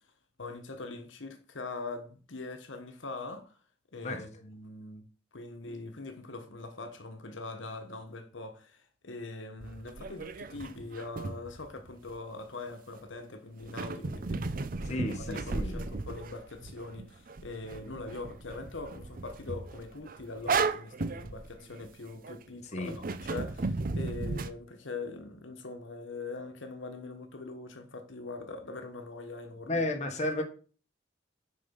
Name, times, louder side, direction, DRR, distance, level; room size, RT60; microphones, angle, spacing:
voice 1, 0.4-3.6 3.9-5.0 5.3-29.8, left 3 dB, 90° left, 1.1 m, -42 dB
sound 1, 9.6-12.2 13.6-22.4 22.9-24.5, right 3 dB, 50° right, 0.6 m, -35 dB
voice 2, 14.8-15.9 22.6-22.9 29.7-30.4, left 1 dB, 40° left, 1.5 m, -33 dB
6.7 x 5.4 x 5.4 m
head